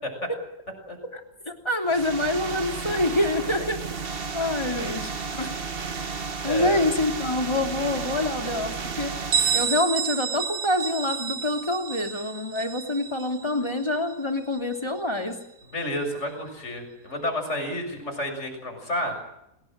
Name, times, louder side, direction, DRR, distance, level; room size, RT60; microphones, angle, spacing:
voice 1, 1.5-3.8 4.3-5.1 5.4-5.5 6.4-15.4, left 1 dB, 15° left, 4 dB, 3.3 m, -26 dB
sound 1, 1.8-9.8, right 5 dB, 40° right, 1.5 m, -33 dB
voice 2, 6.4-6.8 15.7-19.2, left 1 dB, 45° left, 5 dB, 6.9 m, -30 dB
Bell, 9.3-14.8, right 7 dB, 75° right, 1.7 m, -30 dB
28.5 x 19.5 x 7.7 m, 0.84 s
omnidirectional pair, 1.6 m